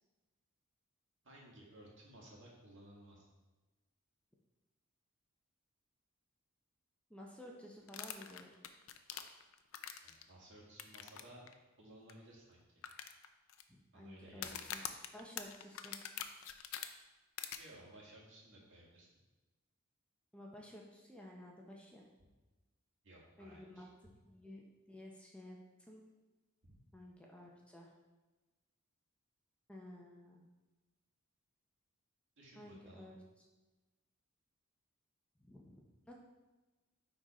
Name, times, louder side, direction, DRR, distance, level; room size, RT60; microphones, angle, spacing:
voice 1, 1.2-3.3 10.0-11.4 11.8-12.6 13.9-14.7 17.6-19.1 23.0-23.9 26.6-26.7 32.4-33.1, right 1 dB, 60° right, -3 dB, 2.1 m, -57 dB
voice 2, 7.1-8.5 13.7-14.8 15.1-16.0 20.3-22.0 23.4-23.9 24.2-25.6 25.9-26.0 26.9-27.9 29.7-30.4 32.6-33.2 35.4-36.1, left 1 dB, 5° left, -2 dB, 0.8 m, -53 dB
sound 1, 7.9-10.2 10.8-11.2 11.5-11.6 12.1-12.2 12.8-13.6 14.3-16.9 17.4-17.6, left 10 dB, 65° left, 0.5 m, -44 dB
9.8 x 3.9 x 4.3 m, 1.1 s
head